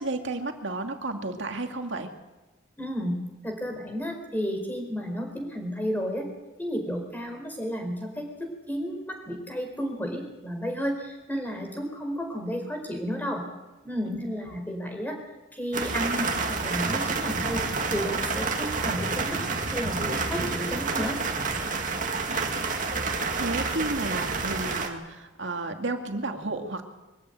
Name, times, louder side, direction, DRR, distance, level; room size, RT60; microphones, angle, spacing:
voice 1, 0.0-2.1 14.1-14.2 23.1-26.9, right 2 dB, 70° right, 5 dB, 2.4 m, -32 dB
voice 2, 2.8-3.2 3.4-6.3 6.6-13.4 13.8-15.2 15.5-17.6 17.9-19.4 19.7-21.2, equal, 10° left, 3 dB, 4.4 m, -32 dB
sound 1, 15.7-24.9, right 4 dB, 40° right, 2.3 m, -29 dB
23.5 x 14.0 x 9.3 m, 1.1 s
head